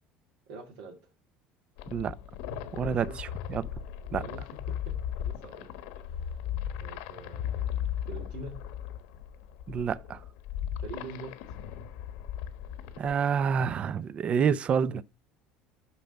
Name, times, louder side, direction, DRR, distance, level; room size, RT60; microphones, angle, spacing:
voice 1, 0.5-1.0 2.8-3.2 4.1-5.7 6.1-6.2 6.8-8.6 10.8-11.6, right 3 dB, 80° right, 2.1 m, -45 dB
sound 1, 1.8-13.1, left 10 dB, 80° left, 1.2 m, -37 dB
voice 2, 2.7-3.7 4.1-4.2 9.7-10.2 13.0-15.0, right 7 dB, 35° right, 0.5 m, -28 dB
6.9 x 5.8 x 5.2 m
cardioid pair, 130°, 4 cm